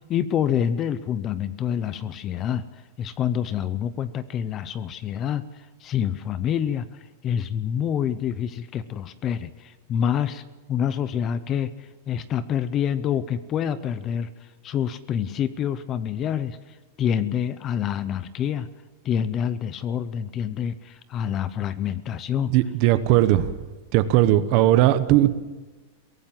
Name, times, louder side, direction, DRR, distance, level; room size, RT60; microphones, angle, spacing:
voice 1, 0.1-2.6 3.0-6.9 7.2-10.4 10.7-14.3 14.6-16.6 17.0-18.7 19.0-22.5, left 9 dB, 20° left, 16 dB, 0.6 m, -27 dB
voice 2, 22.5-23.4 23.9-25.3, right 14 dB, 35° right, 13 dB, 1.1 m, -18 dB
23.0 x 18.0 x 7.4 m, 1.2 s
supercardioid pair, 180°, 0 cm